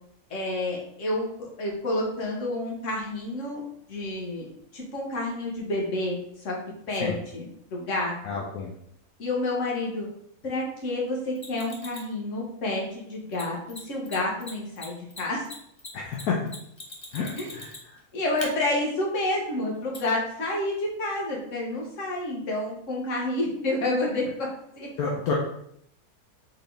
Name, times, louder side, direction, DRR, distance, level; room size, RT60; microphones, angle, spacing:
voice 1, 0.3-3.6 3.9-4.5 4.7-6.5 6.9-7.4 7.7-8.4 9.2-10.1 10.4-15.4 17.4-17.5 18.1-24.2 24.7-24.9, left 2 dB, 55° left, -2 dB, 1.5 m, -29 dB
voice 2, 8.2-8.7 15.9-16.4 17.1-17.9 25.0-25.3, left 5 dB, 75° left, -2 dB, 1.1 m, -30 dB
Mechanisms, 11.4-12.1 13.3-13.4 13.7-13.8 14.0-14.2 14.4-18.0 18.4-18.5 19.9-20.0, left 2 dB, 30° left, 0.5 m, -40 dB
4.1 x 3.6 x 3.3 m, 0.71 s
omnidirectional pair, 1.6 m